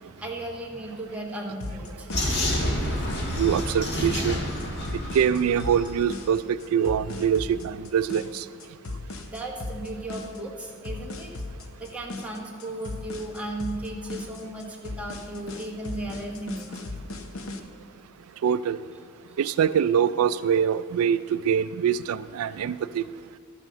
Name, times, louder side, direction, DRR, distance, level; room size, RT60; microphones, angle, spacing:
voice 1, 0.2-2.1 9.1-11.3 11.8-16.8, right 1 dB, 5° right, -2 dB, 1.5 m, -36 dB
sound 1, 1.6-17.6, left 2 dB, 70° left, 0.9 m, -38 dB
Vehicle, 2.1-6.0, left 1 dB, 55° left, 1.6 m, -29 dB
voice 2, 3.4-4.4 5.1-8.4 18.4-18.8 19.4-23.0, right 8 dB, 85° right, 14 dB, 0.3 m, -24 dB
12.5 x 6.2 x 6.6 m, 2.2 s
head